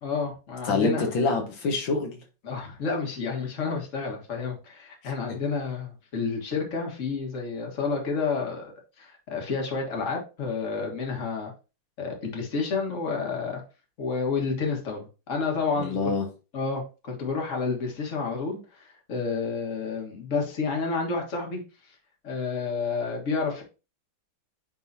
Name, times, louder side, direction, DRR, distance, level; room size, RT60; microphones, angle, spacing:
voice 1, 0.0-1.1 2.4-8.7 9.0-11.5 12.0-13.6 14.0-16.0 16.5-21.6 22.2-23.6, left 4 dB, 40° left, 1 dB, 1.8 m, -30 dB
voice 2, 0.6-2.1 5.0-5.1 15.8-16.3, left 3 dB, 80° left, 2 dB, 2.0 m, -26 dB
9.6 x 3.7 x 2.7 m, 0.31 s
omnidirectional pair, 2.1 m